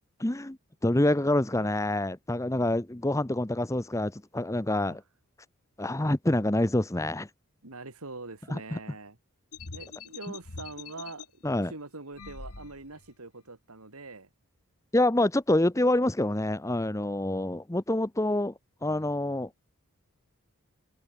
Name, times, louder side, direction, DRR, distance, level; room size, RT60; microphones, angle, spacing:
voice 1, 0.2-0.6 0.8-5.0 5.8-7.3 8.5-8.8 11.4-11.7 14.9-18.5 18.8-19.5, left 1 dB, 15° left, 0.8 m, -26 dB
voice 2, 7.6-9.2 9.7-11.3 11.5-14.3, right 3 dB, 80° right, 3.0 m, -43 dB
sound 1, 9.5-11.3 12.1-13.1, left 4 dB, 90° left, 1.7 m, -44 dB
head